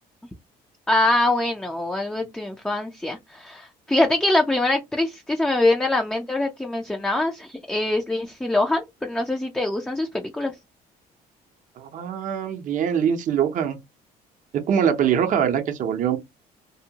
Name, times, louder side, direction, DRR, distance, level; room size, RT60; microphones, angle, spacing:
voice 1, 0.9-10.5, left 2 dB, 5° left, 0.4 m, -23 dB
voice 2, 11.8-13.8 14.7-16.2, right 8 dB, 50° right, 0.6 m, -23 dB
2.7 x 2.1 x 2.7 m
cardioid pair, 110°, 17 cm